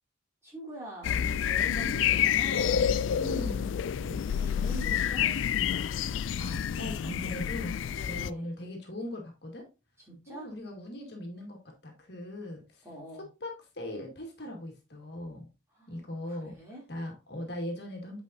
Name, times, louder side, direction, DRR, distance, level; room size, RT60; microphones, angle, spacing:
voice 1, 0.4-2.9 3.9-6.2 7.0-7.1 7.9-8.5 10.0-10.5 12.8-13.3 15.7-16.8, equal, 15° right, -4 dB, 2.9 m, -45 dB
sound 1, 1.0-8.3, left 9 dB, 75° left, 0.3 m, -28 dB
voice 2, 3.2-3.8 6.4-7.7 8.1-9.6 10.3-12.8 13.4-15.5 15.9-16.5 16.9-18.2, left 1 dB, 55° left, 2 dB, 1.7 m, -39 dB
8.4 x 5.0 x 2.7 m, 0.28 s
head